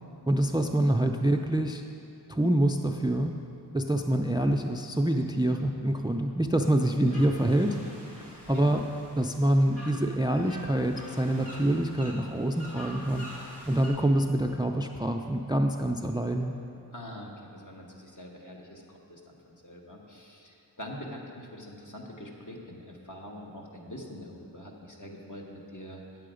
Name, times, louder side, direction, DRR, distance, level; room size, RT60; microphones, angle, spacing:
voice 1, 0.3-1.8 2.3-3.3 3.7-7.8 8.2-8.8 9.2-16.5, right 1 dB, 10° right, 4 dB, 0.4 m, -26 dB
sound 1, 7.1-13.9, equal, 80° left, 2.3 m, -46 dB
voice 2, 16.9-26.0, left 1 dB, 50° left, -1 dB, 1.4 m, -44 dB
9.2 x 7.6 x 5.0 m, 2.6 s
wide cardioid pair, 45°, 40 cm